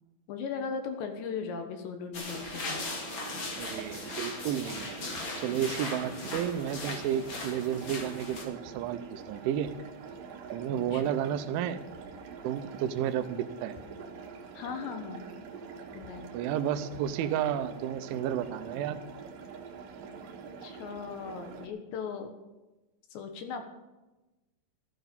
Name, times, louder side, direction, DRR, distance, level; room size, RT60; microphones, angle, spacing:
voice 1, 0.3-2.8 10.8-11.1 14.5-15.2 15.9-16.3 20.6-22.3 23.1-23.6, left 6 dB, 70° left, 6 dB, 3.4 m, -38 dB
sound 1, 2.1-8.4, left 3 dB, 50° left, 1.4 m, -38 dB
sound 2, 2.3-21.7, right 5 dB, 60° right, 2.5 m, -45 dB
voice 2, 3.6-5.0 5.4-9.7 10.5-11.8 12.4-13.8 16.3-19.0, right 10 dB, 80° right, 10 dB, 3.2 m, -32 dB
14.5 x 13.5 x 5.3 m, 1.1 s
omnidirectional pair, 5.6 m